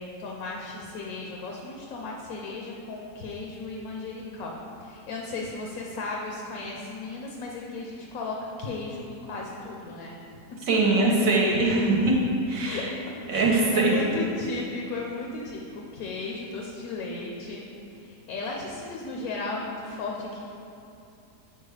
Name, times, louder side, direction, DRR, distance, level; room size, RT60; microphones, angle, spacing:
voice 1, 0.0-10.1 12.6-12.8 13.3-17.6 17.9-20.4, left 3 dB, 70° left, -1 dB, 1.0 m, -35 dB
voice 2, 10.7-12.2 12.5-12.9 13.3-14.1, right 2 dB, 65° right, -2 dB, 1.2 m, -22 dB
7.0 x 4.4 x 3.2 m, 2.8 s
omnidirectional pair, 1.6 m